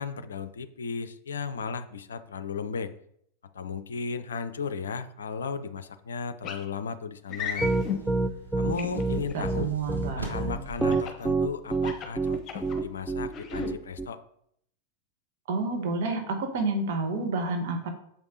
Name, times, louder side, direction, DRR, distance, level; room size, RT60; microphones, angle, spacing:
voice 1, 0.0-2.9 3.5-7.7 8.6-9.7 10.1-14.2, left 5 dB, 65° left, 12 dB, 0.5 m, -35 dB
sound 1, 6.4-6.6 7.3-8.0 8.8-9.4 10.9-11.2 11.7-12.8 13.3-13.7, left 6 dB, 30° left, 1.2 m, -34 dB
sound 2, 7.4-10.8, right 2 dB, 80° right, 1.6 m, -42 dB
Piano, 7.6-14.1, right 3 dB, 10° right, 0.4 m, -27 dB
voice 2, 8.7-10.6 15.5-17.9, right 3 dB, 55° right, 4 dB, 1.3 m, -30 dB
7.3 x 5.3 x 3.9 m, 0.69 s
figure-of-eight pair, 90°, 0 cm